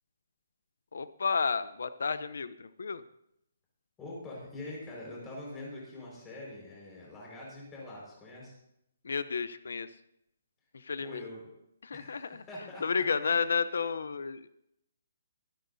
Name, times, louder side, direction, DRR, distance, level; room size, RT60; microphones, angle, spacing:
voice 1, 0.9-3.0 9.0-9.9 10.7-11.2 11.8-12.4 12.8-14.4, left 5 dB, 75° left, 14 dB, 0.7 m, -31 dB
voice 2, 4.0-8.5 11.0-11.5 11.9-12.8 13.2-13.4, left 2 dB, 10° left, -5 dB, 5.1 m, -44 dB
24.5 x 10.0 x 2.7 m, 0.78 s
hypercardioid pair, 175°, 0 cm